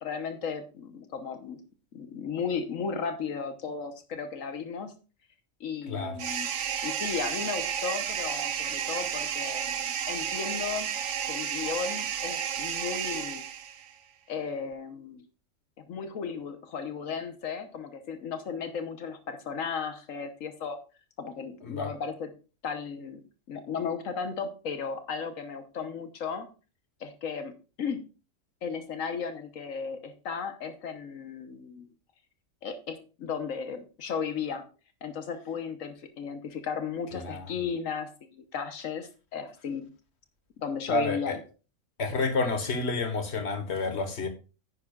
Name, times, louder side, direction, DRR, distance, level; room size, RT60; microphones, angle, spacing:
voice 1, 0.0-1.6 1.9-4.9 5.6-6.5 6.8-10.9 11.3-13.4 14.3-15.2 15.9-20.8 21.2-22.3 22.6-23.2 23.5-26.5 27.0-28.0 28.6-31.9 32.6-34.6 35.0-39.9 40.6-41.4, left 6 dB, 80° left, 1.4 m, -35 dB
voice 2, 5.9-6.2 21.6-21.9 37.1-37.4 40.9-41.4 42.0-44.3, left 3 dB, 55° left, 1.6 m, -29 dB
sound 1, 6.2-13.9, right 8 dB, 65° right, 1.1 m, -32 dB
10.0 x 9.7 x 2.4 m
omnidirectional pair, 1.4 m